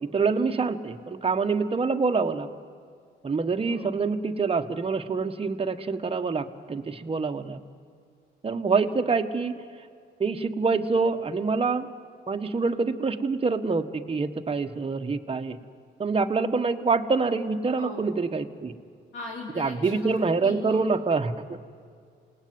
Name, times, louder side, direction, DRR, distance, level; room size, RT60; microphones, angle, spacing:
voice 1, 0.0-2.5 3.2-7.6 8.4-9.6 10.2-11.9 12.3-15.6 16.0-18.7 19.6-21.6, right 4 dB, 30° right, 6 dB, 1.4 m, -26 dB
voice 2, 3.6-4.0 8.8-9.0 17.7-18.0 19.1-20.1 20.4-20.9, left 3 dB, 70° left, -2 dB, 4.4 m, -39 dB
28.0 x 19.0 x 9.6 m, 2.2 s
cardioid pair, 90°, 20 cm